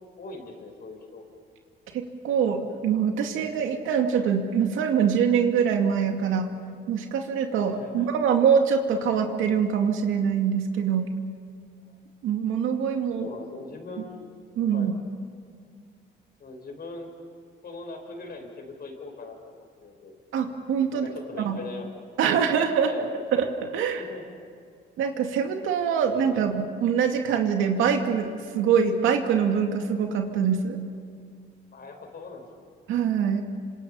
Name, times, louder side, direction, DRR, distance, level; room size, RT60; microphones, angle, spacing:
voice 1, 0.2-1.2 7.6-8.2 11.8-12.0 13.2-14.2 14.7-14.9 16.4-17.1 17.6-20.2 20.9-21.9 22.8-23.1 24.0-24.3 31.7-32.7, left 3 dB, 50° left, 3 dB, 5.4 m, -41 dB
voice 2, 1.9-6.5 6.9-11.1 12.2-13.3 14.6-14.9 20.3-21.1 21.5-21.6 22.2-22.9 23.3-24.1 25.0-30.8 32.9-33.4, right 7 dB, 85° right, 4 dB, 2.4 m, -24 dB
27.5 x 26.0 x 5.7 m, 2.2 s
cardioid pair, 90°, 20 cm